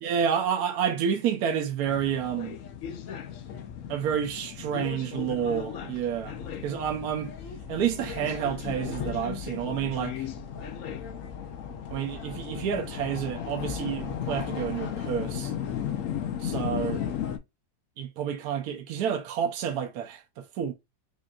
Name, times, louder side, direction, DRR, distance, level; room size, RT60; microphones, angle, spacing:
voice 1, 0.0-2.6 3.9-7.3 7.7-10.3 11.9-15.5 16.4-17.0 18.0-20.7, right 8 dB, 70° right, 1.1 m, -29 dB
sound 1, 1.8-17.4, left 8 dB, 65° left, 0.8 m, -35 dB
5.1 x 2.6 x 2.4 m
omnidirectional pair, 1.8 m